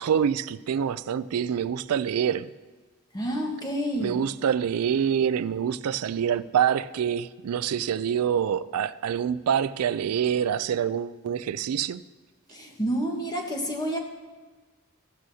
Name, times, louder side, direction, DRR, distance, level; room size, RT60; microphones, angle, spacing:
voice 1, 0.0-2.5 4.0-12.0, right 8 dB, 85° right, 15 dB, 0.4 m, -26 dB
voice 2, 3.1-4.1 12.5-14.0, equal, 20° left, 1 dB, 1.3 m, -29 dB
15.0 x 12.5 x 2.8 m, 1.3 s
head